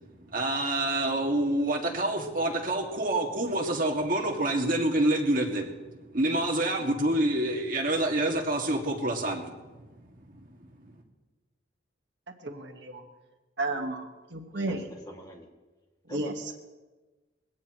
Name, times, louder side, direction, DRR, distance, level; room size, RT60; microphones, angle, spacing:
voice 1, 0.2-5.8 6.1-9.5, right 1 dB, 45° right, 1 dB, 2.1 m, -27 dB
voice 2, 12.4-13.0 13.6-14.0 14.3-14.8 16.1-16.5, right 2 dB, 65° right, 3 dB, 1.5 m, -32 dB
voice 3, 15.1-15.5 16.1-16.5, equal, 20° left, 0 dB, 2.2 m, -44 dB
21.5 x 16.5 x 3.1 m, 1.2 s
head